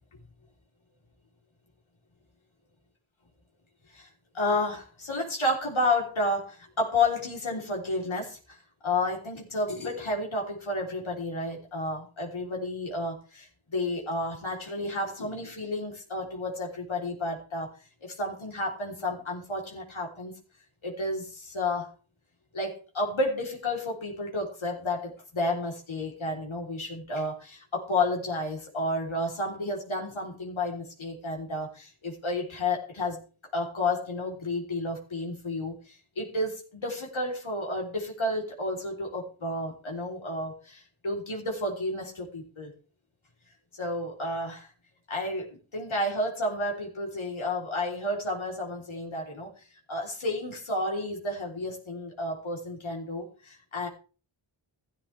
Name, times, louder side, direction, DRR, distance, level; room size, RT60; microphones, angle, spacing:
voice 1, 4.3-17.7 18.0-20.3 20.8-21.9 22.5-33.2 33.5-42.7 43.7-44.7 45.1-53.9, left 2 dB, 80° left, 0 dB, 3.7 m, -31 dB
15.0 x 13.5 x 3.4 m, 0.36 s
cardioid pair, 45°, 47 cm